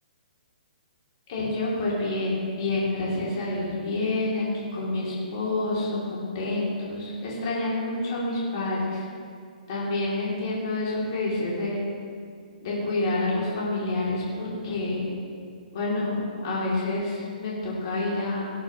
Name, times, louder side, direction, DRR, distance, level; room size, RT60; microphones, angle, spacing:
voice 1, 1.3-9.0 9.7-11.8 12.6-15.1 15.7-18.5, left 2 dB, 35° left, -6 dB, 3.5 m, -28 dB
18.5 x 9.6 x 3.3 m, 2.2 s
hypercardioid pair, 175°, 5 cm